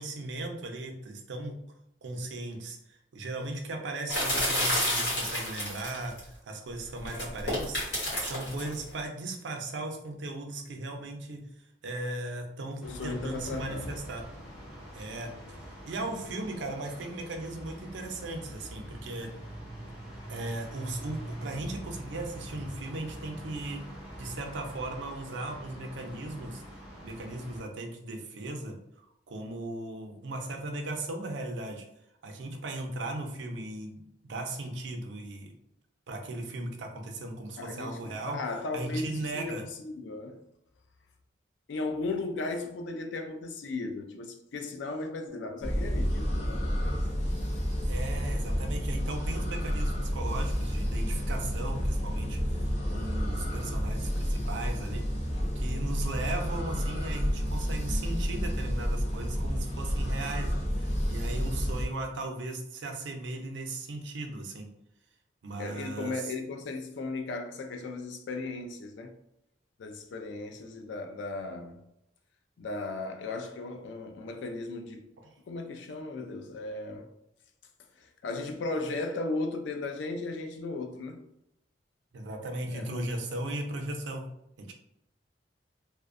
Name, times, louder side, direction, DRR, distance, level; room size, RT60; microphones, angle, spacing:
voice 1, 0.0-1.5 2.0-11.4 11.8-14.2 14.9-15.3 15.6-19.3 20.3-23.8 24.2-26.6 27.0-31.9 32.2-35.5 36.1-38.4 38.7-39.6 47.8-55.0 55.6-64.7 65.4-66.3 75.2-75.3 82.1-84.2 84.6-84.7, right 2 dB, 90° right, 0.5 m, -37 dB
sound 1, 4.1-6.2 7.0-8.7, left 1 dB, 70° left, 1.2 m, -29 dB
voice 2, 12.8-14.0 16.4-16.5 37.6-40.4 41.7-47.0 65.6-69.2 69.8-71.8 72.6-75.0 75.5-77.1 78.0-81.2 82.7-83.1, left 3 dB, 90° left, 0.4 m, -36 dB
sound 2, 12.8-27.6, right 1 dB, 5° right, 0.7 m, -44 dB
sound 3, 45.6-61.9, equal, 40° left, 0.5 m, -30 dB
2.4 x 2.1 x 2.5 m
head